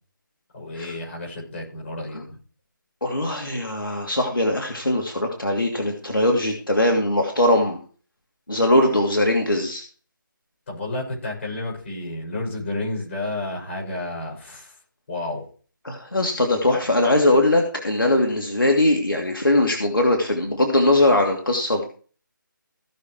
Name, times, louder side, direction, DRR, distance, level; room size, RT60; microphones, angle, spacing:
voice 1, 0.5-2.4 10.7-14.7 15.1-15.4, left 2 dB, 35° left, -1 dB, 6.4 m, -31 dB
voice 2, 3.0-7.8 8.5-9.8 15.8-21.9, left 1 dB, 80° left, 1 dB, 2.6 m, -20 dB
16.5 x 6.4 x 4.6 m, 0.40 s
figure-of-eight pair, 150°, 11 cm